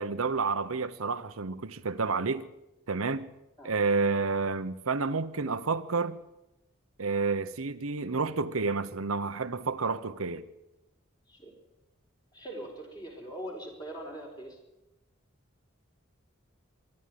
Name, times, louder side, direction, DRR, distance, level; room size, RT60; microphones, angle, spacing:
voice 1, 0.0-2.4 2.9-3.3 3.6-6.2 7.0-10.4, right 4 dB, 85° right, 1.0 m, -30 dB
voice 2, 12.3-14.6, right 1 dB, 20° left, 4.7 m, -42 dB
23.0 x 12.0 x 9.4 m
head